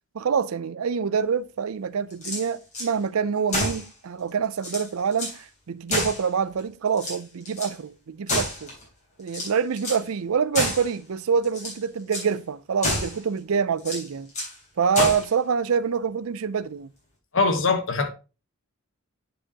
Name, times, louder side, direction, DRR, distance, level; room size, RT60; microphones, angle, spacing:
voice 1, 0.1-8.7 9.2-14.3 14.8-16.9, right 6 dB, 75° right, 0.5 m, -26 dB
sound 1, 2.1-2.9 3.5-3.9 4.3-4.4 4.6-5.4 5.9-6.6 6.9-7.7 8.3-8.8 9.3-10.1 10.5-10.9 11.4-11.8 12.1-12.3 12.8-13.2 13.8-14.6 14.9-15.3, left 1 dB, 35° left, 3.6 m, -29 dB
voice 2, 17.3-18.1, left 4 dB, 60° left, 1.2 m, -22 dB
10.0 x 4.9 x 2.9 m
head